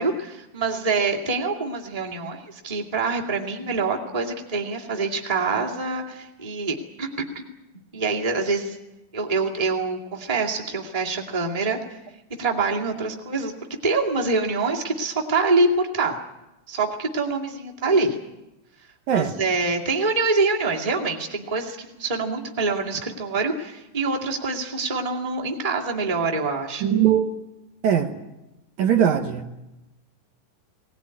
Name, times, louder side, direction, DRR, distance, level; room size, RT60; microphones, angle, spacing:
voice 1, 0.0-7.2 7.9-8.8 9.1-11.8 12.4-13.5 13.8-16.2 16.7-18.2 19.1-26.9, right 3 dB, 15° right, 1 dB, 1.8 m, -25 dB
voice 2, 26.8-27.3 27.8-28.1 28.8-29.6, right 9 dB, 65° right, 4 dB, 2.5 m, -20 dB
20.5 x 18.5 x 9.6 m, 0.96 s
omnidirectional pair, 3.9 m